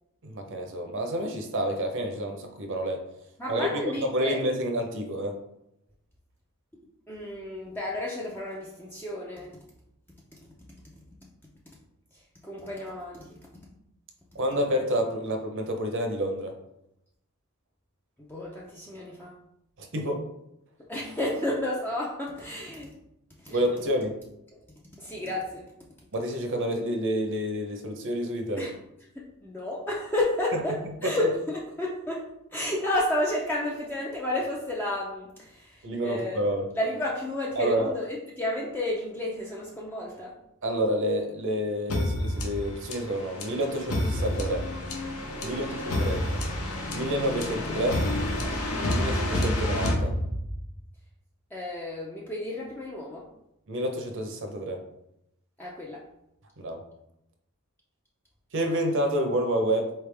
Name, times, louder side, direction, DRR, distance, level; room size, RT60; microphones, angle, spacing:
voice 1, 0.2-3.0 3.5-3.7 4.0-5.4 14.3-16.5 19.8-20.2 23.5-24.2 26.1-28.7 31.0-31.1 35.8-36.6 37.6-37.9 40.6-44.7 45.4-46.4 46.9-48.0 48.9-50.1 53.7-54.8 56.6-56.8 58.5-59.9, equal, 60° right, 4 dB, 0.8 m, -29 dB
voice 2, 3.4-4.4 7.1-9.6 12.1-13.4 18.3-19.4 20.9-22.9 23.4-24.0 24.5-24.6 24.9-25.6 28.6-28.7 29.2-36.5 36.7-40.3 45.4-45.6 51.5-53.3 55.6-56.1, left 1 dB, 10° left, -4 dB, 0.5 m, -32 dB
sound 1, 41.9-50.7, left 1 dB, 75° left, 0.9 m, -29 dB
4.5 x 3.3 x 3.4 m, 0.80 s
head